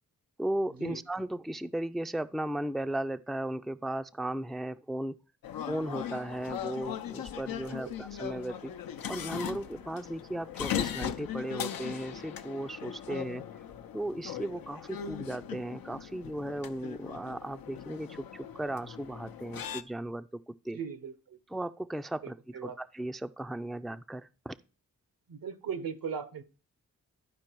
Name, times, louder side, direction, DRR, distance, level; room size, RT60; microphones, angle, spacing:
voice 1, 0.4-5.2 5.7-8.7 9.1-13.4 13.9-20.8 21.5-24.6, right 1 dB, ahead, 0.4 m, -36 dB
sound 1, 5.4-19.8, left 9 dB, 80° left, 0.7 m, -39 dB
voice 2, 20.7-21.4 22.5-22.8 25.3-26.4, right 7 dB, 75° right, 1.2 m, -38 dB
12.0 x 4.7 x 4.6 m
cardioid pair, 55°, 34 cm